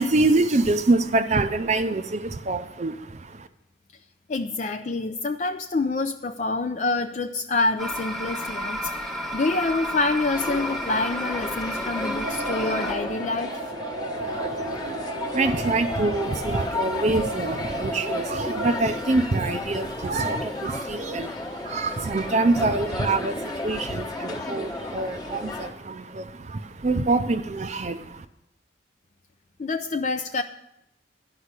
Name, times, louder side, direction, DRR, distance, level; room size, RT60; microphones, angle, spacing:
voice 1, 0.0-3.5 14.2-28.3, right 2 dB, 40° right, 9 dB, 0.5 m, -25 dB
voice 2, 4.3-13.6 29.6-30.4, left 3 dB, 45° left, 6 dB, 0.4 m, -27 dB
sound 1, 7.8-12.9, equal, ahead, 0.9 m, -31 dB
sound 2, 10.3-25.7, left 2 dB, 20° left, 1.1 m, -33 dB
sound 3, 12.2-18.8, right 3 dB, 65° right, 0.8 m, -34 dB
11.5 x 5.6 x 8.1 m, 0.83 s
head